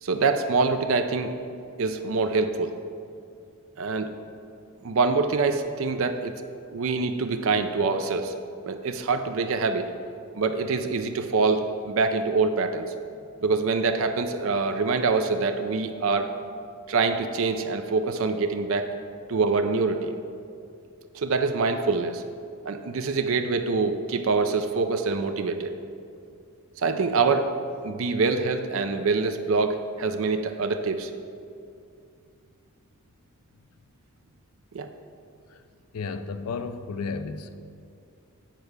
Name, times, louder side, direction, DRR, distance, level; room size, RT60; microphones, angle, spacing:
voice 1, 0.0-1.3 1.8-2.7 3.8-4.1 4.8-6.4 6.7-8.3 8.6-9.9 10.3-12.9 13.4-16.3 16.9-18.9 19.3-20.2 21.1-22.2 22.6-25.7 26.8-27.5 27.8-31.1 34.7-34.9, right 4 dB, 60° right, 7 dB, 0.5 m, -25 dB
voice 2, 35.9-37.6, left 4 dB, 80° left, 11 dB, 0.5 m, -33 dB
9.1 x 4.6 x 6.5 m, 2.4 s
head